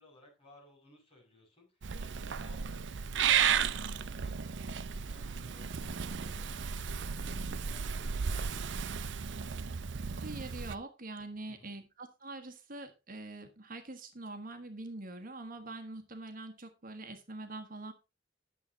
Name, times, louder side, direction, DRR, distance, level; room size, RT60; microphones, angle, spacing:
voice 1, 0.0-8.7 11.5-11.8, left 1 dB, 30° left, -1 dB, 6.6 m, -60 dB
Purr / Meow, 1.8-10.8, right 7 dB, 70° right, 0.6 m, -34 dB
voice 2, 10.1-17.9, right 2 dB, 45° right, 7 dB, 1.4 m, -44 dB
11.5 x 7.4 x 4.0 m, 0.27 s
head